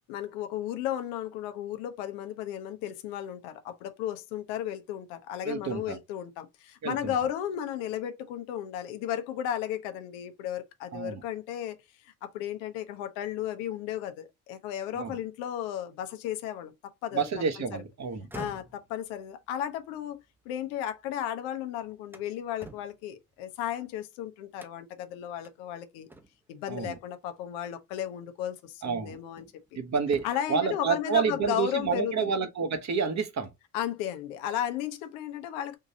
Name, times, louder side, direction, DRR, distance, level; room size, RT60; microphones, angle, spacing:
voice 1, 0.1-11.8 12.0-16.7 17.0-17.3 18.3-26.1 26.5-29.4 30.2-32.4 33.7-35.8, left 10 dB, 85° left, 0.7 m, -34 dB
voice 2, 5.4-6.0 6.8-7.1 10.9-11.2 14.9-15.2 17.1-18.3 26.7-27.0 28.8-29.2 29.7-33.5, right 6 dB, 40° right, 1.0 m, -29 dB
sound 1, 18.1-21.2 21.6-24.0 24.6-25.0 25.4-25.6 26.1-26.6 27.8-28.0 28.6-29.7 30.0-30.6, right 1 dB, 5° right, 0.7 m, -49 dB
3.7 x 2.6 x 2.7 m
supercardioid pair, 70°, 42 cm